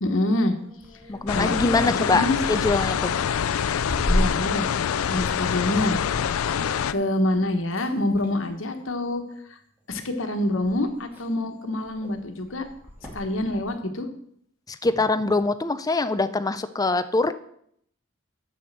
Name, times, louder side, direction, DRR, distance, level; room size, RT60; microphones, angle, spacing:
voice 1, 0.0-0.5 1.3-2.4 4.1-4.7 5.1-6.0 6.4-6.6 6.9-9.2 9.9-12.6 13.1-14.1, left 1 dB, 65° left, 6 dB, 1.3 m, -26 dB
sound 1, 0.5-7.4 7.7-8.4 9.3-9.7 10.2-10.3 10.5-13.7, equal, 10° right, 2.5 m, -34 dB
voice 2, 1.1-3.1 14.7-17.3, left 3 dB, 20° left, 11 dB, 0.5 m, -23 dB
sound 2, 1.3-6.9, left 8 dB, 85° left, 0.4 m, -25 dB
7.4 x 7.0 x 6.7 m, 0.69 s
head